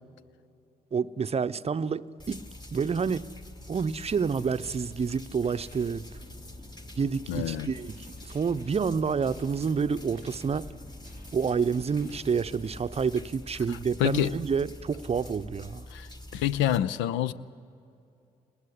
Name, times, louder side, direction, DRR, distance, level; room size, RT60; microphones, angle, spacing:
voice 1, 0.9-3.3 3.7-6.1 7.0-10.7 11.3-15.9, right 6 dB, 30° right, 0.7 m, -29 dB
sound 1, 2.2-16.8, left 1 dB, 20° left, 2.1 m, -45 dB
sound 2, 5.5-12.9, left 2 dB, 50° left, 3.5 m, -52 dB
voice 2, 7.3-7.7 13.7-14.3 15.9-17.3, left 11 dB, 70° left, 0.7 m, -28 dB
27.0 x 19.5 x 10.0 m
hypercardioid pair, 50°, 20 cm